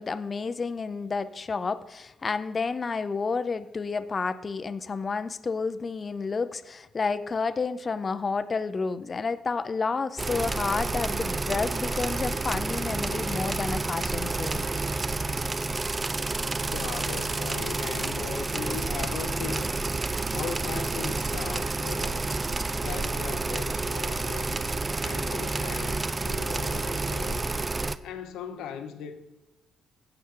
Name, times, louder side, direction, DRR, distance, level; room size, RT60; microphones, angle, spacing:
voice 1, 0.0-14.7, left 4 dB, 35° left, 0.5 m, -30 dB
sound 1, 10.2-28.0, right 3 dB, 25° right, 0.4 m, -29 dB
voice 2, 16.6-19.7 20.3-22.4 22.8-24.7 25.0-27.6 28.0-29.1, left 8 dB, 85° left, 0.7 m, -38 dB
15.5 x 5.7 x 3.7 m
cardioid pair, 90°, 0 cm